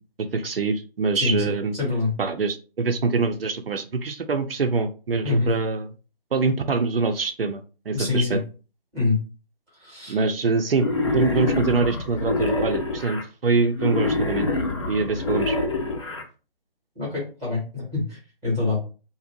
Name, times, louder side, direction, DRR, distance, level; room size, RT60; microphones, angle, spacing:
voice 1, 0.2-1.7 2.2-5.9 6.3-7.6 7.9-8.4 10.1-14.5 14.9-15.6, right 4 dB, 75° right, 6 dB, 0.5 m, -24 dB
voice 2, 1.7-2.1 5.2-5.5 7.9-8.4 8.9-9.2 9.8-10.2 16.9-18.8, left 3 dB, 10° right, -7 dB, 0.7 m, -25 dB
Wild animals, 10.7-13.2 13.7-16.2, left 3 dB, 30° left, 0.4 m, -26 dB
2.5 x 2.0 x 2.6 m, 0.35 s
figure-of-eight pair, 150°, 29 cm